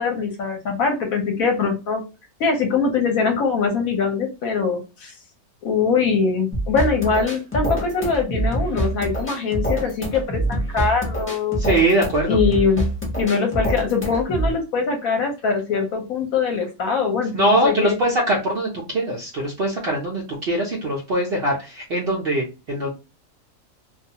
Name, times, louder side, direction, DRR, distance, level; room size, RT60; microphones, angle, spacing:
voice 1, 0.0-2.0 2.4-5.1 5.6-11.6 12.3-12.9 13.2-18.0, left 5 dB, 65° left, 3 dB, 0.9 m, -22 dB
sound 1, 6.5-14.5, right 1 dB, 15° left, 0.4 m, -25 dB
voice 2, 11.6-12.4 17.3-22.9, right 1 dB, 80° right, -1 dB, 0.5 m, -22 dB
2.5 x 2.3 x 2.7 m, 0.29 s
omnidirectional pair, 1.8 m